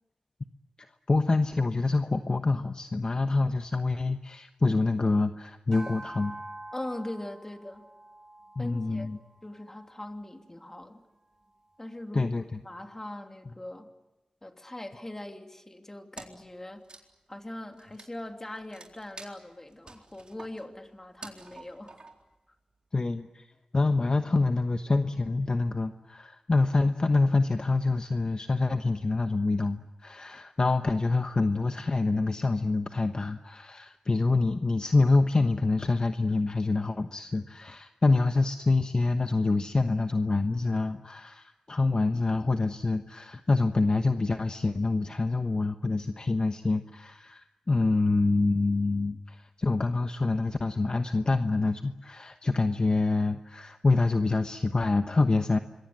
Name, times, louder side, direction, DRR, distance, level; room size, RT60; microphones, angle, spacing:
voice 1, 1.1-6.3 8.6-9.2 12.1-12.4 22.9-23.5 23.7-55.6, left 3 dB, 40° left, 7 dB, 1.1 m, -26 dB
sound 1, 5.7-10.3, right 1 dB, 25° right, 1.6 m, -46 dB
voice 2, 6.7-7.9 8.6-9.1 9.4-11.0 11.8-12.3 12.6-13.9 14.4-16.8 17.3-22.0, left 1 dB, 20° left, 5 dB, 3.0 m, -41 dB
Wood, 16.1-16.5 16.8-22.4, right 3 dB, 50° right, 4.0 m, -49 dB
26.5 x 22.5 x 9.5 m, 1.0 s
wide cardioid pair, 70°, 2 cm